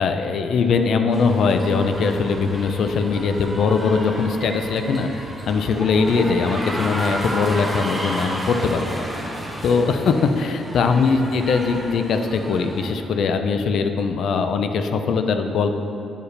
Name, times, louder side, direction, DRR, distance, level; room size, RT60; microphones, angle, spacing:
voice 1, 0.0-9.3 9.6-15.7, left 5 dB, 65° left, 7 dB, 0.5 m, -21 dB
sound 1, 1.1-12.9, right 1 dB, 5° right, 1.1 m, -31 dB
9.8 x 4.7 x 3.3 m, 2.7 s
cardioid pair, 90°, 0 cm